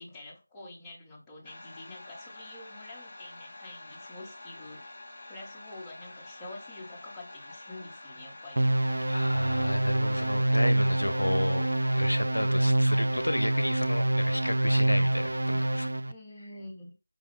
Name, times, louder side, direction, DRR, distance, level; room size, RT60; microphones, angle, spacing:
voice 1, 0.0-4.8 5.3-8.7 16.0-16.9, left 2 dB, 5° left, 0.7 m, -47 dB
sound 1, 1.4-12.1, left 2 dB, 35° left, 1.0 m, -47 dB
sound 2, 8.6-16.1, right 1 dB, 60° right, 0.4 m, -26 dB
voice 2, 9.1-15.9, left 1 dB, 75° left, 0.5 m, -32 dB
4.9 x 2.3 x 3.2 m
figure-of-eight pair, 170°, 0 cm